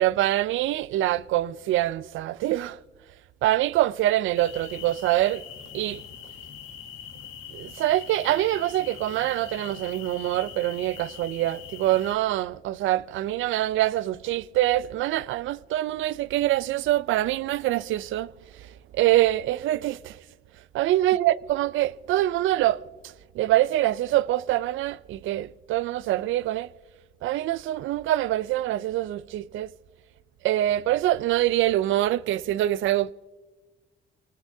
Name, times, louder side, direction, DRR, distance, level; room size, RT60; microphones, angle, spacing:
voice 1, 0.0-2.8 3.4-5.4 5.7-6.0 7.5-18.3 18.9-20.2 20.7-22.8 23.4-26.7 27.2-29.7 30.4-33.1, right 14 dB, 80° right, 0.4 m, -24 dB
sound 1, 4.3-12.2, left 8 dB, 85° left, 1.8 m, -42 dB
25.0 x 18.5 x 2.7 m
cardioid pair, 90°, 20 cm